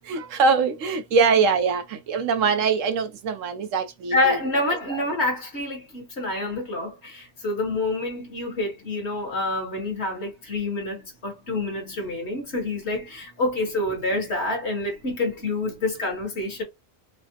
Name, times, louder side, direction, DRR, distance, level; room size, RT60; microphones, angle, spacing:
voice 1, 0.1-4.4, right 5 dB, 70° right, 0.9 m, -22 dB
voice 2, 4.1-16.6, left 2 dB, 50° left, 1.6 m, -27 dB
4.8 x 2.0 x 2.8 m
omnidirectional pair, 1.4 m